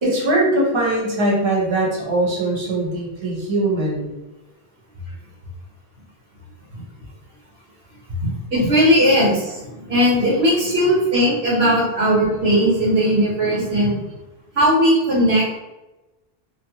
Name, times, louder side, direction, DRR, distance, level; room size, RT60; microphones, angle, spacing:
voice 1, 0.0-4.1 11.5-11.6, right 1 dB, 30° right, -3 dB, 0.7 m, -21 dB
voice 2, 8.2-14.0 14.5-15.6, equal, 90° right, -5 dB, 1.4 m, -18 dB
2.8 x 2.1 x 2.8 m, 1.0 s
omnidirectional pair, 1.0 m